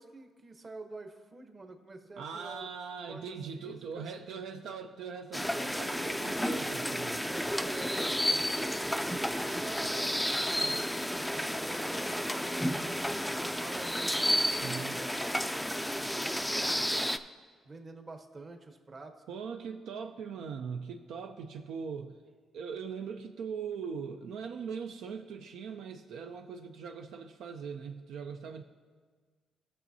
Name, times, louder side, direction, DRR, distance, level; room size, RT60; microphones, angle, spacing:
voice 1, 0.0-2.7 3.0-4.0 7.1-10.8 11.5-15.1 15.7-16.9 17.6-19.1, right 3 dB, 35° right, 5 dB, 1.0 m, -48 dB
voice 2, 2.2-7.2 14.6-15.0 19.3-22.2 22.5-28.6, right 6 dB, 80° right, 5 dB, 0.5 m, -40 dB
sound 1, 5.3-17.2, equal, ahead, 0.4 m, -31 dB
17.0 x 6.1 x 2.7 m, 1.5 s
cardioid pair, 90°, 0 cm